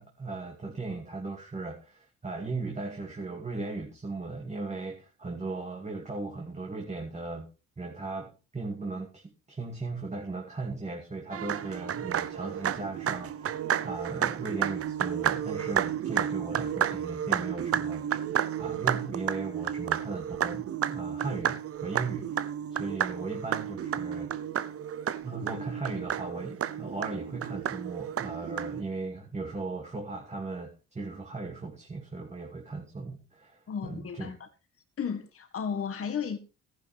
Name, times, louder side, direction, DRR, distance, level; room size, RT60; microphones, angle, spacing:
voice 1, 0.0-7.5 7.8-18.2 18.6-24.3 25.2-34.3, right 3 dB, 20° right, 2.4 m, -37 dB
sound 1, 11.3-28.8, right 9 dB, 50° right, 0.7 m, -31 dB
voice 2, 33.7-34.4 35.0-36.4, left 7 dB, 50° left, 1.8 m, -33 dB
14.5 x 10.5 x 3.5 m
cardioid pair, 90°, 30 cm